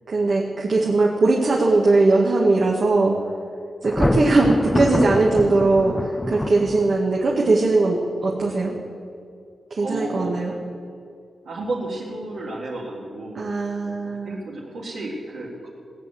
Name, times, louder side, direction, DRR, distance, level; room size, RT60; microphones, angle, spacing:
voice 1, 0.1-3.2 3.8-8.8 9.7-10.5 13.3-14.4, right 3 dB, 50° right, -2 dB, 1.9 m, -20 dB
Thunder, 3.8-7.2, left 1 dB, 10° left, 0.4 m, -24 dB
voice 2, 9.8-10.6 11.4-13.5 13.8-15.7, right 2 dB, 75° right, -8 dB, 3.5 m, -32 dB
18.0 x 8.8 x 7.8 m, 2.4 s
wide cardioid pair, 120°, 0 cm